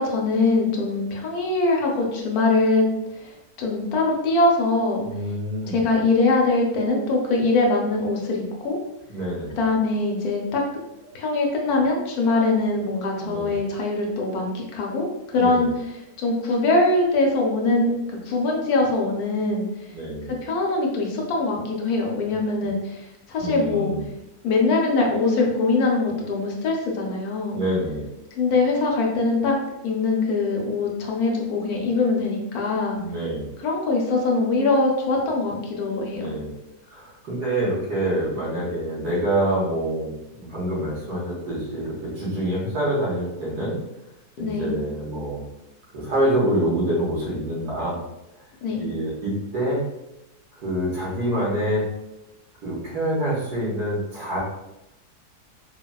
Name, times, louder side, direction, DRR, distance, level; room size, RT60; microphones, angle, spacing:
voice 1, 0.0-2.9 3.2-3.3 3.6-5.0 5.7-8.8 9.5-10.6 11.1-15.7 16.2-19.7 20.4-23.0 23.3-23.9 24.4-27.6 28.4-29.5 29.8-33.0 33.6-36.2 44.4-44.8 48.6-48.8, left 3 dB, 75° left, 0 dB, 1.1 m, -22 dB
voice 2, 5.0-5.8 9.1-9.6 13.2-13.6 15.3-15.7 19.9-20.4 23.4-24.1 27.5-28.1 33.0-33.5 36.1-36.5 36.9-43.8 44.4-45.4 45.9-48.0 48.8-49.8 50.5-51.8 52.6-54.4, right 1 dB, 80° right, -5 dB, 1.7 m, -26 dB
4.0 x 2.1 x 2.2 m, 0.90 s
omnidirectional pair, 1.7 m